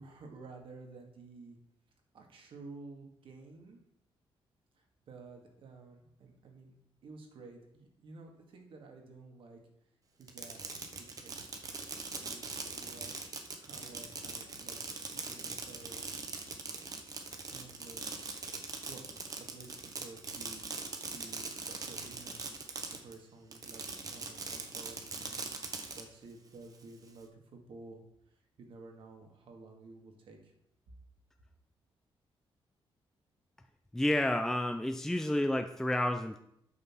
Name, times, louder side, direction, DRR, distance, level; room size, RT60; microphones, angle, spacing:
voice 1, 0.0-1.6 2.1-3.8 4.7-6.7 7.0-9.6 10.2-10.6 11.1-11.6 12.1-13.1 13.4-16.0 17.5-18.3 18.9-19.0 19.4-20.7 21.0-23.8 24.1-28.0 28.6-30.5, right 3 dB, 65° right, 3 dB, 2.0 m, -52 dB
Fireworks, 10.2-23.1 23.5-26.0, right 4 dB, 40° right, 1.3 m, -41 dB
voice 2, 33.9-36.4, left 1 dB, 5° left, 6 dB, 0.4 m, -30 dB
8.5 x 5.6 x 6.1 m, 0.75 s
wide cardioid pair, 150°, 10 cm